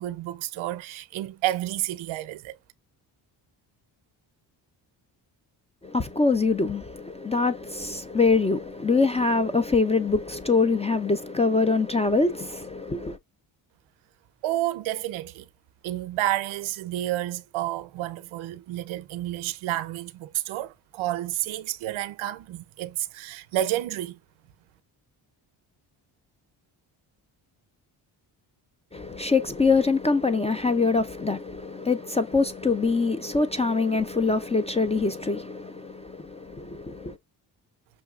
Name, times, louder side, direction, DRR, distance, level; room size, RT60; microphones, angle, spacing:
voice 1, 0.0-2.6 14.4-15.5 15.8-24.2, right 14 dB, 75° right, 0.7 m, -30 dB
voice 2, 5.8-13.2 28.9-37.2, left 4 dB, 15° left, 0.3 m, -24 dB
6.2 x 2.3 x 2.3 m
supercardioid pair, 55°, 47 cm